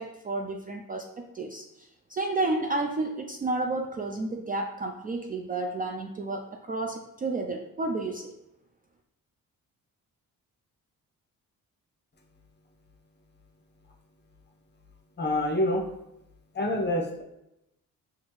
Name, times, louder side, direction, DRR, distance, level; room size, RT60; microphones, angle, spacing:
voice 1, 0.0-8.3, right 2 dB, 25° right, 2 dB, 0.3 m, -31 dB
voice 2, 15.2-15.8 16.5-17.2, left 1 dB, 30° left, 0 dB, 0.9 m, -26 dB
4.2 x 2.5 x 3.1 m, 0.86 s
cardioid pair, 65°, 37 cm